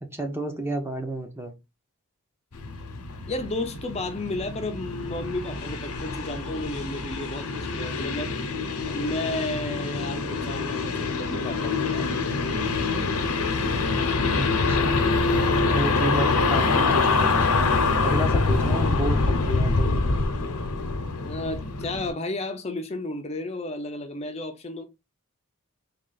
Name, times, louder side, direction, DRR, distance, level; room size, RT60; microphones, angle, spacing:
voice 1, 0.0-1.5 14.3-15.0 15.7-20.1, right 1 dB, 10° right, 0.7 m, -31 dB
sound 1, 2.5-22.1, left 3 dB, 90° left, 0.8 m, -25 dB
voice 2, 3.3-8.3 8.8-12.1 21.2-24.8, left 2 dB, 30° left, 0.5 m, -33 dB
3.7 x 2.3 x 3.9 m
head